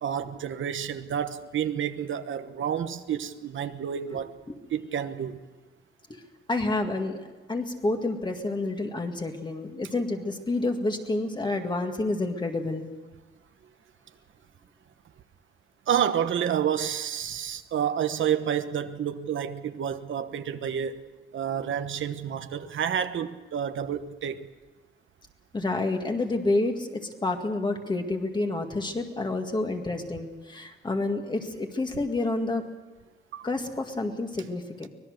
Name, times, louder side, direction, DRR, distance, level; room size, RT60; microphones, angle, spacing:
voice 1, 0.0-4.3 4.7-5.4 15.9-21.0 21.3-24.5 33.3-33.5, right 9 dB, 85° right, 1.2 m, -29 dB
voice 2, 6.5-7.2 7.5-12.9 25.5-32.6 33.4-34.9, left 2 dB, 25° left, 2.0 m, -29 dB
24.5 x 19.5 x 6.5 m
wide cardioid pair, 165°, 20 cm